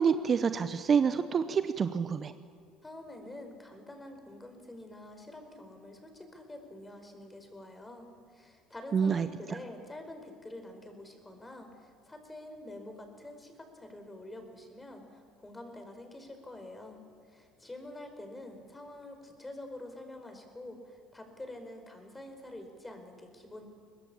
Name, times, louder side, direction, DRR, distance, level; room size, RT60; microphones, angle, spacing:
voice 1, 0.0-2.3 8.9-9.6, right 6 dB, 40° right, 11 dB, 0.8 m, -27 dB
voice 2, 2.8-23.6, left 1 dB, 15° left, 6 dB, 4.9 m, -47 dB
23.0 x 20.0 x 7.2 m, 2.1 s
hypercardioid pair, 65°, 0 cm